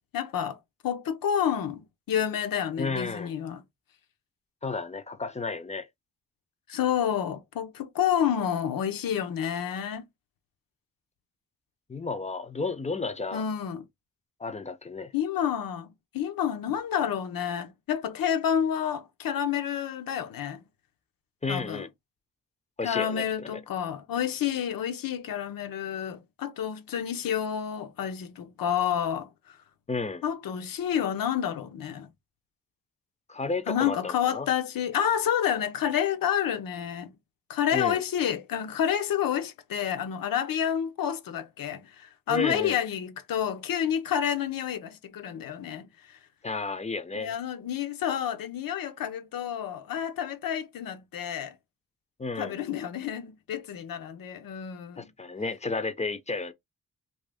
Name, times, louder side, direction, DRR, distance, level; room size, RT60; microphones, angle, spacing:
voice 1, 0.1-3.6 6.7-10.0 13.3-13.8 15.1-20.6 21.5-21.9 22.8-29.6 30.2-32.1 33.7-37.1 37.5-45.9 47.1-51.5 52.4-55.1, left 9 dB, 80° left, 0.7 m, -29 dB
voice 2, 2.8-3.3 4.6-5.9 11.9-13.5 14.4-15.1 21.4-21.9 22.8-23.6 29.9-30.2 33.3-34.5 37.7-38.0 42.3-42.8 46.4-47.3 52.2-52.6 55.0-56.5, left 3 dB, 20° left, 0.5 m, -32 dB
2.9 x 2.7 x 3.4 m
wide cardioid pair, 120°, 34 cm